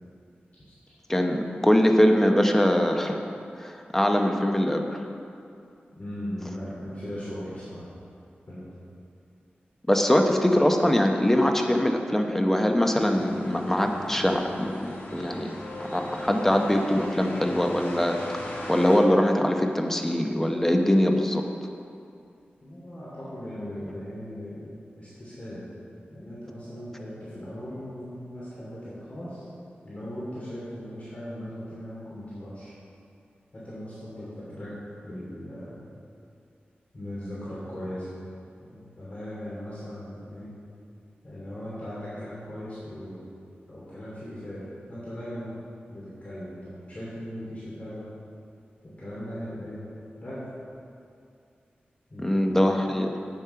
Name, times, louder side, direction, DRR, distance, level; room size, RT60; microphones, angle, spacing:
voice 1, 1.1-3.2 3.6-5.0 9.9-15.5 15.8-21.4 52.2-53.1, left 1 dB, 10° left, 3 dB, 0.8 m, -22 dB
voice 2, 6.0-7.8 8.5-8.7 22.6-24.7 24.9-25.6 26.1-29.5 29.8-32.7 33.5-34.7 35.0-35.8 36.9-38.1 38.6-40.5 41.2-43.3 43.7-44.6 44.9-45.5 45.9-46.6 46.9-48.0 49.0-49.8 50.2-50.4 52.1-52.7, equal, 40° left, -10 dB, 2.7 m, -38 dB
sound 1, 13.0-19.0, left 1 dB, 80° left, 2.0 m, -38 dB
8.7 x 7.4 x 5.7 m, 2.5 s
wide cardioid pair, 110°, 4 cm